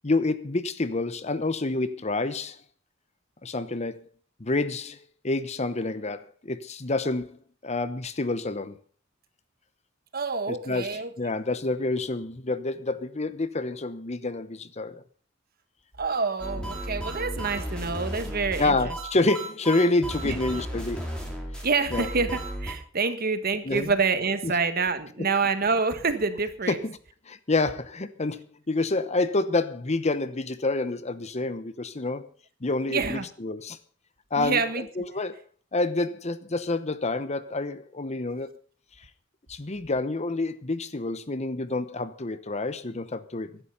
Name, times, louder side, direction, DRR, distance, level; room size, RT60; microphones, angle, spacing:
voice 1, 0.0-2.6 3.4-4.1 4.4-5.0 5.2-8.8 10.5-15.0 18.6-21.1 21.9-22.1 23.6-23.9 24.4-24.5 26.7-27.0 27.3-32.3 32.6-33.8 34.3-35.4 35.7-38.5 39.5-43.6, left 2 dB, 35° left, 0.9 m, -28 dB
voice 2, 10.1-11.1 16.0-18.9 20.2-20.4 21.6-26.8 32.9-33.3 34.4-34.9, right 4 dB, 50° right, 1.6 m, -27 dB
sound 1, 16.4-22.7, right 1 dB, 5° left, 4.5 m, -34 dB
15.5 x 11.5 x 5.6 m
head